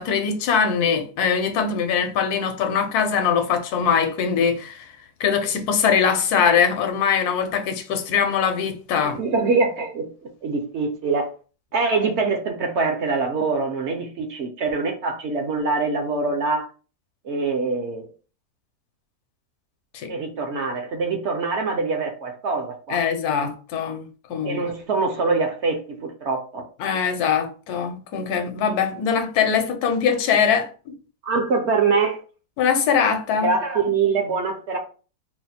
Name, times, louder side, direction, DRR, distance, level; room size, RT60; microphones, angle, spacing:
voice 1, 0.0-4.9 5.2-9.2 19.9-20.1 22.9-24.6 26.8-31.0 32.6-33.5, left 7 dB, 70° left, 1.2 m, -22 dB
voice 2, 9.0-10.1 10.4-11.3 11.7-16.7 17.2-18.1 20.1-23.0 24.4-26.6 31.2-32.2 33.4-34.8, right 4 dB, 55° right, 0.8 m, -24 dB
4.1 x 2.2 x 4.1 m
omnidirectional pair, 1.8 m